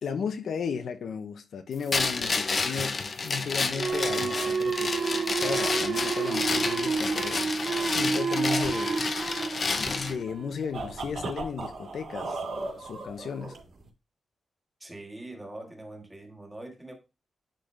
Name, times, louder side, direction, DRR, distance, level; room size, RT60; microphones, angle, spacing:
voice 1, 0.0-4.9 5.4-7.4 7.8-13.6, left 6 dB, 65° left, 0.9 m, -35 dB
sound 1, 1.9-10.2, left 4 dB, 35° left, 0.7 m, -30 dB
sound 2, 3.7-11.0, right 5 dB, 45° right, 0.3 m, -30 dB
sound 3, 3.7-13.9, right 3 dB, 65° right, 3.1 m, -40 dB
voice 2, 14.8-16.9, right 1 dB, 10° right, 1.6 m, -43 dB
10.0 x 3.9 x 3.3 m
wide cardioid pair, 175°, 0 cm